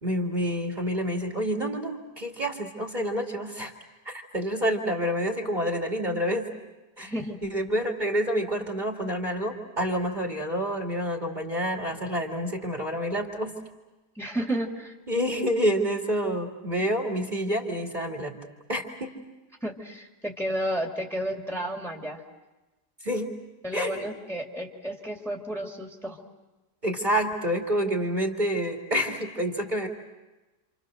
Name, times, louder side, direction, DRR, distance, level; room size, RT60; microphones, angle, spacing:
voice 1, 0.0-3.7 4.1-6.5 7.0-7.1 7.4-13.5 15.1-18.3 18.7-19.2 23.0-23.3 23.7-24.0 26.8-29.9, equal, 30° right, 1 dB, 2.5 m, -28 dB
voice 2, 7.0-7.4 14.2-14.9 19.6-22.2 23.6-26.2, right 1 dB, ahead, 0 dB, 2.5 m, -32 dB
28.5 x 27.5 x 6.5 m, 1.1 s
omnidirectional pair, 1.7 m